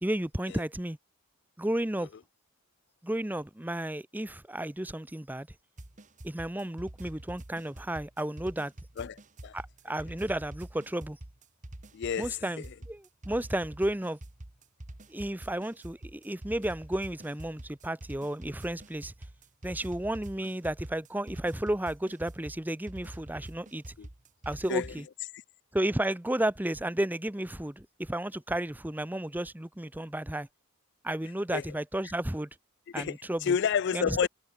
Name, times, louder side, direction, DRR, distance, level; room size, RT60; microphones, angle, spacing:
voice 1, 0.0-1.0 1.6-2.1 3.0-5.5 6.2-8.7 9.5-11.2 12.2-14.2 15.1-19.1 19.6-24.0 24.5-25.0 25.7-30.5 31.0-32.5 32.9-33.5 33.9-34.3, right 1 dB, 10° right, 0.7 m, -33 dB
sound 1, 5.8-25.0, right 1 dB, 35° right, 1.4 m, -46 dB
voice 2, 9.0-9.6 11.9-12.7 24.0-24.1 24.7-24.9 25.3-25.4 31.5-31.6 32.9-34.3, left 7 dB, 50° left, 0.4 m, -30 dB
head